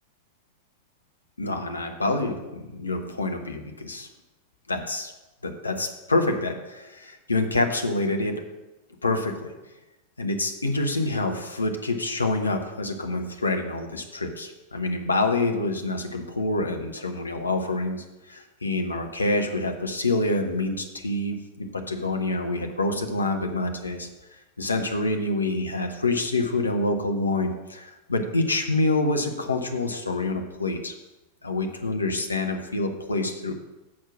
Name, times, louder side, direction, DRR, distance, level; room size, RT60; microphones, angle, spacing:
voice 1, 1.4-4.1 4.7-5.1 5.4-8.4 9.0-9.5 10.2-24.1 24.6-30.9 31.4-33.6, left 2 dB, 80° left, 5 dB, 0.8 m, -27 dB
7.3 x 4.5 x 6.1 m, 1.0 s
figure-of-eight pair, 90°, 0 cm